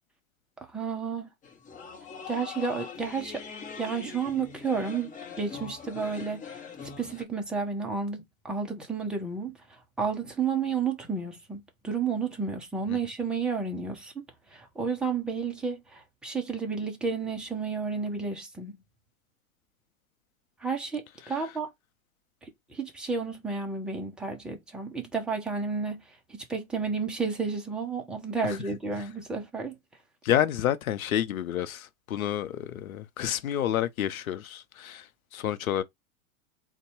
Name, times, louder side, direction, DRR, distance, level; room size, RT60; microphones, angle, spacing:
voice 1, 0.7-1.3 2.3-3.4 3.8-6.6 7.0-14.2 14.5-18.8 20.6-21.7 22.4-26.0 26.3-29.7, right 5 dB, ahead, 0.3 m, -31 dB
sound 1, 1.4-7.2, left 5 dB, 20° left, 0.8 m, -42 dB
voice 2, 30.2-35.1 35.3-35.8, left 11 dB, 80° left, 0.7 m, -29 dB
4.0 x 2.2 x 4.5 m
hypercardioid pair, 115°, 41 cm